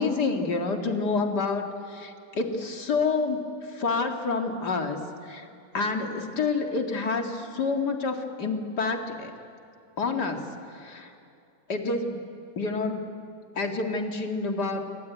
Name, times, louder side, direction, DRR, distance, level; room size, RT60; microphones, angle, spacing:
voice 1, 0.0-5.5 5.7-9.3 10.0-10.4 10.7-11.1 11.7-12.2 12.6-13.1 13.6-14.9, left 4 dB, 60° left, 4 dB, 2.7 m, -28 dB
27.5 x 22.5 x 9.3 m, 2.5 s
omnidirectional pair, 2.0 m